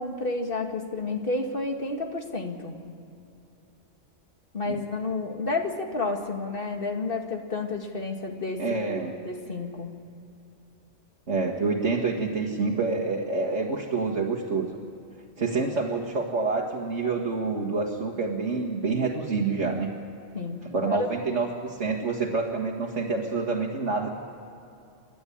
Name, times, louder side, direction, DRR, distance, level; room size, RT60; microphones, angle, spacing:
voice 1, 0.0-2.7 4.5-9.9 20.3-21.0, left 3 dB, 50° left, 3 dB, 2.2 m, -31 dB
voice 2, 8.6-9.2 11.3-14.7 15.4-19.9 20.7-24.1, right 4 dB, 75° right, -2 dB, 2.1 m, -27 dB
27.5 x 11.5 x 10.0 m, 2.7 s
omnidirectional pair, 1.2 m